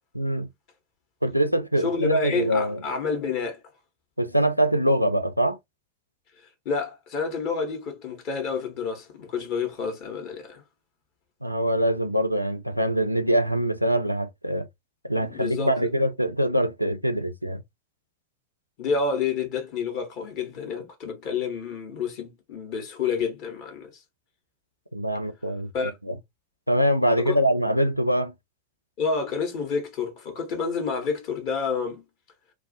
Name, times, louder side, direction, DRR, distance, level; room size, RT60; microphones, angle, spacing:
voice 1, 0.1-0.5 1.2-2.8 4.2-5.6 11.4-14.7 15.0-17.6 24.9-26.1 26.7-28.3, equal, 90° left, 0.3 m, -24 dB
voice 2, 1.8-3.6 6.7-10.6 15.1-15.9 18.8-24.0 25.7-25.9 27.2-27.4 29.0-32.0, left 5 dB, 45° left, 0.7 m, -29 dB
2.3 x 2.1 x 2.5 m
figure-of-eight pair, 90°, 0 cm